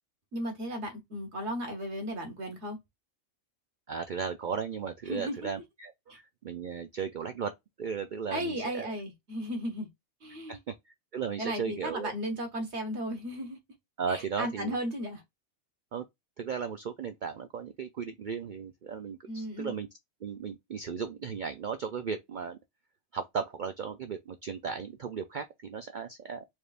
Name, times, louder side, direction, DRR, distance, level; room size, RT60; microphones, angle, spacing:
voice 1, 0.3-2.8 5.1-5.5 6.1-6.2 8.3-9.9 10.2-10.6 11.4-13.6 14.1-15.2 19.3-19.8, equal, 55° right, 1.6 m, -35 dB
voice 2, 3.9-8.9 10.5-10.6 10.9-12.1 14.0-14.8 15.9-16.0 16.4-19.9 20.2-22.6 23.1-26.5, right 6 dB, 80° right, 0.4 m, -36 dB
4.5 x 3.3 x 2.4 m
omnidirectional pair, 1.4 m